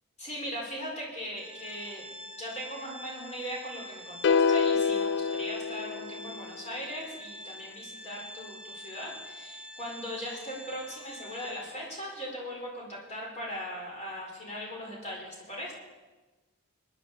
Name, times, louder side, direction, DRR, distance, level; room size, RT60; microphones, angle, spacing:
voice 1, 0.2-2.1 2.4-15.7, equal, 30° left, -3 dB, 4.7 m, -39 dB
Organ, 1.4-12.0, left 1 dB, 5° right, 2.2 m, -46 dB
sound 1, 4.2-6.5, left 6 dB, 50° left, 0.4 m, -26 dB
20.5 x 11.0 x 4.3 m, 1.2 s
head